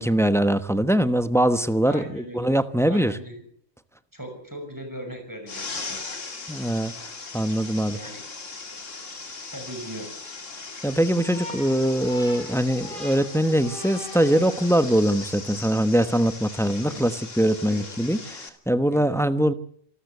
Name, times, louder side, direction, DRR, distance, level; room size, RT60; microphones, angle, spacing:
voice 1, 0.0-3.2 6.5-6.9 7.3-8.0 10.8-19.5, right 1 dB, ahead, 12 dB, 0.9 m, -22 dB
voice 2, 1.8-2.5 2.9-3.4 4.1-6.0 7.7-8.3 9.5-10.2 16.8-17.1 17.7-17.9 18.9-19.1, right 1 dB, 15° right, 4 dB, 6.1 m, -39 dB
sound 1, 5.5-18.5, left 4 dB, 65° left, 2.7 m, -39 dB
sound 2, 11.1-15.0, left 1 dB, 40° left, 6.9 m, -41 dB
27.5 x 13.0 x 8.3 m, 0.63 s
omnidirectional pair, 1.4 m